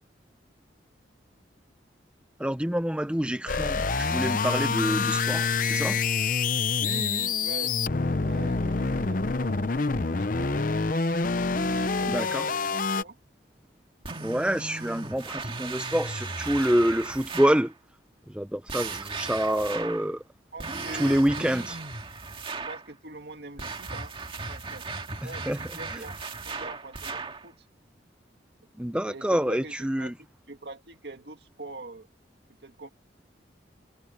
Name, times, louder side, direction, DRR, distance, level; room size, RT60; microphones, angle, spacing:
voice 1, 2.4-6.0 12.1-12.4 14.2-17.7 18.3-20.2 21.0-21.8 25.2-25.6 25.9-26.0 28.8-30.1, equal, 5° right, 0.7 m, -27 dB
sound 1, 3.5-13.0, left 4 dB, 45° left, 0.7 m, -26 dB
voice 2, 6.8-7.8 8.2-11.0 11.4-13.2 19.4-20.0 20.5-21.7 22.5-24.1 24.5-24.9 25.2-26.2 26.5-27.7 29.0-30.1 30.5-32.1 32.6-32.9, right 2 dB, 65° right, 2.0 m, -43 dB
sound 2, 14.0-17.7 18.7-20.1 20.6-22.9 23.6-27.4, right 4 dB, 30° right, 2.1 m, -36 dB
head